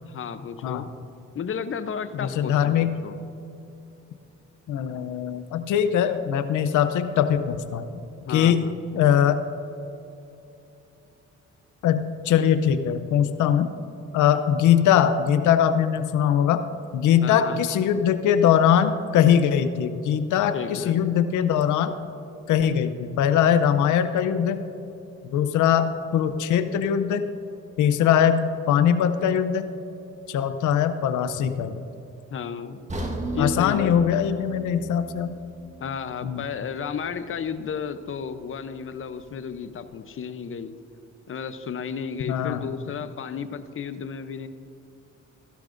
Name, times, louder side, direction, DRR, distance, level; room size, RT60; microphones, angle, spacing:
voice 1, 0.0-0.9 1.3-3.2 8.3-8.7 17.2-17.6 20.5-21.0 32.3-32.8 33.3-33.9 35.8-40.7 41.3-44.5, left 6 dB, 45° left, 11 dB, 0.7 m, -33 dB
voice 2, 2.2-3.0 4.7-7.8 8.3-8.7 8.9-9.4 11.8-13.7 14.1-16.6 16.9-21.9 22.5-24.6 25.3-27.2 27.8-29.7 30.3-31.8 33.4-35.3 36.2-36.4 42.3-42.7, left 9 dB, 75° left, 10 dB, 0.6 m, -21 dB
sound 1, 32.9-37.0 37.3-37.5 38.1-38.2, right 2 dB, 25° right, 1.5 m, -35 dB
16.0 x 12.5 x 2.6 m, 2.8 s
cardioid pair, 90°, 30 cm